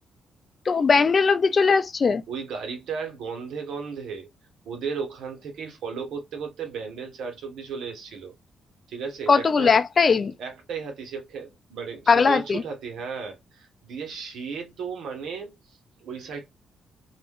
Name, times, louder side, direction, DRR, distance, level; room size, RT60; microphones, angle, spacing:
voice 1, 0.7-2.2 9.3-10.3 12.1-12.6, left 5 dB, 40° left, 0.4 m, -19 dB
voice 2, 2.3-4.3 4.6-8.3 8.9-9.8 10.4-16.5, right 5 dB, 80° right, 1.1 m, -35 dB
2.5 x 2.3 x 3.4 m
cardioid pair, 110°, 0 cm